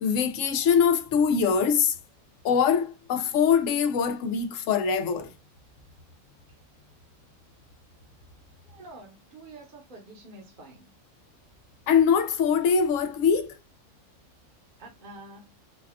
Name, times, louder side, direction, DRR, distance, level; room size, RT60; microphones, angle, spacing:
voice 1, 0.0-2.0 2.4-5.3 11.9-13.6, left 6 dB, 75° left, 0.9 m, -23 dB
voice 2, 8.6-10.9 14.8-15.6, right 2 dB, 40° right, 1.1 m, -47 dB
4.2 x 2.3 x 2.2 m
omnidirectional pair, 1.4 m